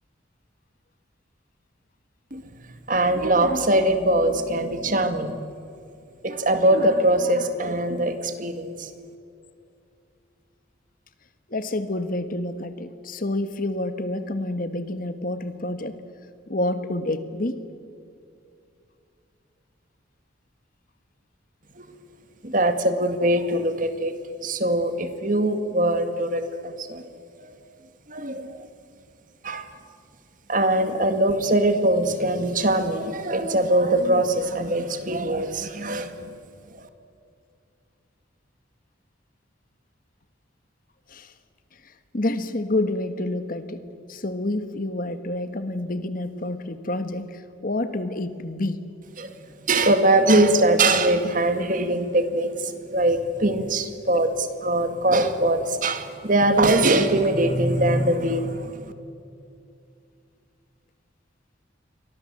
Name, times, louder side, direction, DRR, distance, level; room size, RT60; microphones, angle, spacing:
voice 1, 2.9-5.4 6.2-8.9 21.8-22.0 22.4-24.1 24.4-27.0 27.4-27.5 28.1-28.6 29.4-29.7 30.5-36.4 36.7-36.9 49.2-49.3 49.7-58.9, right 1 dB, 40° right, 8 dB, 2.0 m, -22 dB
voice 2, 11.5-16.0 16.5-17.6 41.1-41.3 41.8-48.8 54.1-54.2, left 1 dB, 45° left, 10 dB, 1.4 m, -28 dB
30.0 x 24.0 x 7.6 m, 2.4 s
head